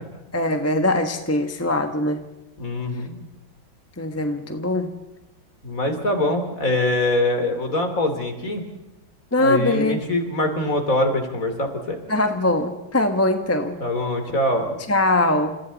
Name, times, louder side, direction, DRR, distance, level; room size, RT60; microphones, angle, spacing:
voice 1, 0.3-2.3 4.0-4.9 9.3-10.0 12.1-13.8 14.9-15.6, left 1 dB, 10° left, 6 dB, 1.0 m, -22 dB
voice 2, 2.6-3.2 5.6-8.6 9.4-12.0 13.8-14.8, left 1 dB, 45° left, 5 dB, 3.4 m, -23 dB
30.0 x 27.5 x 4.1 m, 1.0 s
omnidirectional pair, 2.1 m